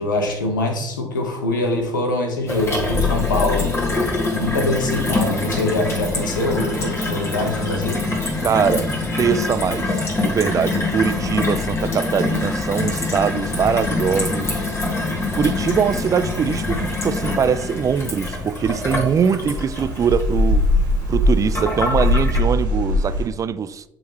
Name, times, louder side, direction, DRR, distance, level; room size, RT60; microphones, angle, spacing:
voice 1, 0.0-3.7 4.3-8.0, left 2 dB, 85° left, 1.0 m, -23 dB
Gurgling / Water tap faucet / Sink (filling or washing), 2.5-22.4, left 3 dB, 25° left, 2.4 m, -24 dB
voice 2, 8.4-14.6 15.3-20.6 21.1-23.8, right 7 dB, 35° right, 0.4 m, -22 dB
Rain, 14.1-23.2, left 1 dB, 90° right, 2.0 m, -24 dB
10.0 x 3.8 x 3.0 m
figure-of-eight pair, 55°, 10 cm